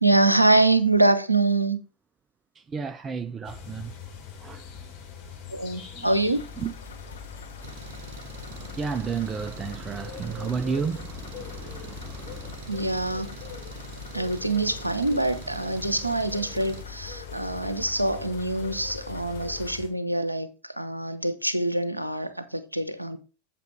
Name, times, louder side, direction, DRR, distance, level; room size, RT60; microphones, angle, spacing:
voice 1, 0.0-1.8 5.5-6.4 12.7-13.3 14.1-23.2, right 2 dB, 90° right, 0.8 m, -24 dB
voice 2, 2.7-3.9 4.4-4.6 6.0-6.1 6.6-6.7 8.5-12.6, right 6 dB, 20° right, 0.4 m, -32 dB
sound 1, 3.4-19.9, left 7 dB, 45° left, 2.9 m, -43 dB
sound 2, 6.3-19.8, left 5 dB, 70° left, 1.0 m, -43 dB
Engine, 7.6-16.8, right 9 dB, 50° right, 0.9 m, -46 dB
8.5 x 7.7 x 3.4 m
figure-of-eight pair, 90°, 0 cm